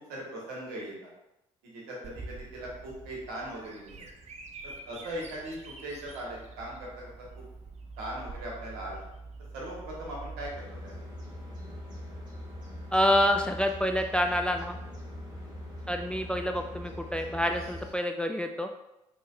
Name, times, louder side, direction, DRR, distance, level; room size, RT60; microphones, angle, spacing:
voice 1, 0.1-1.1 1.6-4.0 4.6-7.4 8.0-9.0 9.5-10.9 15.3-15.5, right 1 dB, 70° right, -3 dB, 1.2 m, -40 dB
Bird vocalization bird call bird song, 2.0-10.5, right 3 dB, 45° right, 0.6 m, -45 dB
sound 1, 10.5-17.9, left 1 dB, 25° right, 1.5 m, -42 dB
voice 2, 12.9-14.8 15.9-18.7, equal, 5° left, 5 dB, 0.3 m, -27 dB
4.5 x 3.0 x 2.3 m, 0.89 s
hypercardioid pair, 45°, 16 cm